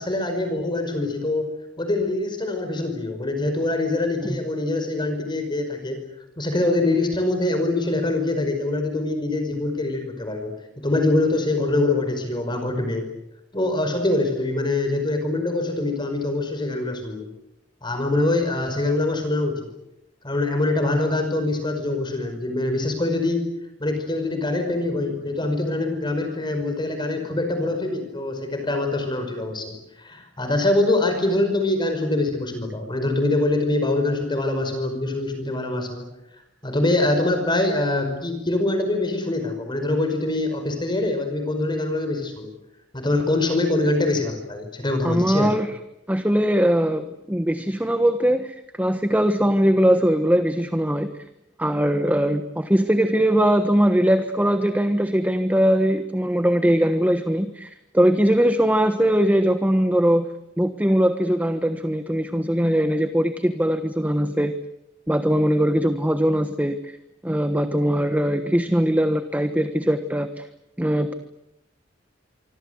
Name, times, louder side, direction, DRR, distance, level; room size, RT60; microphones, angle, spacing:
voice 1, 0.0-6.0 6.4-10.5 10.8-13.1 13.5-17.3 17.8-19.6 20.2-23.5 23.8-36.1 36.6-42.5 42.9-45.5, left 2 dB, 25° left, 6 dB, 5.3 m, -24 dB
voice 2, 45.0-45.8 46.1-51.1 51.6-60.3 60.6-64.5 65.1-67.0 67.2-70.4 70.8-71.1, equal, 10° right, 8 dB, 1.3 m, -21 dB
26.0 x 25.5 x 8.2 m, 0.87 s
head